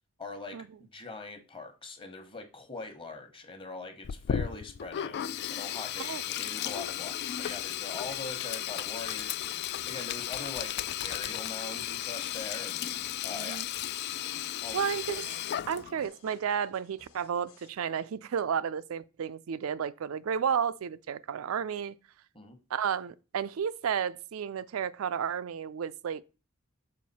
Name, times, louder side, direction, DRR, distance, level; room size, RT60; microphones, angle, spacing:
voice 1, 0.2-5.2 5.5-12.9 13.2-13.6 14.6-15.0 22.3-22.6, left 3 dB, 25° left, 1.2 m, -42 dB
Sink (filling or washing), 4.0-16.1, left 11 dB, 50° left, 0.3 m, -35 dB
sound 1, 9.7-17.7, left 3 dB, 85° left, 1.3 m, -59 dB
voice 2, 13.3-13.7 14.4-15.3 15.7-22.0 22.7-26.2, right 7 dB, 70° right, 0.4 m, -32 dB
6.5 x 4.9 x 4.1 m
head